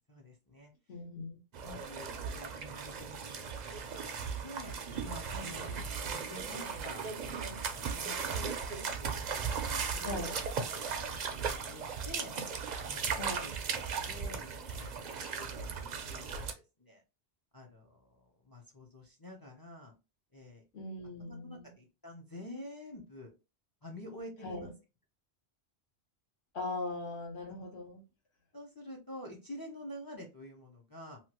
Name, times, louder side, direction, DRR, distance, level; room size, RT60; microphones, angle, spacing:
voice 1, 0.1-0.7 1.6-4.8 5.0-10.4 10.9-12.3 12.8-13.5 14.1-17.0 17.5-19.9 20.3-20.6 21.2-23.3 23.8-24.7 27.6-27.7 28.5-31.2, left 1 dB, 30° left, 1 dB, 0.4 m, -49 dB
voice 2, 0.9-1.4 5.3-5.8 10.0-10.4 13.1-13.5 20.7-21.7 24.4-24.7 26.5-28.0, left 2 dB, 70° left, 1 dB, 1.4 m, -40 dB
sound 1, 1.5-16.5, right 6 dB, 55° right, 0.5 m, -37 dB
2.9 x 2.3 x 2.8 m, 0.28 s
omnidirectional pair, 1.1 m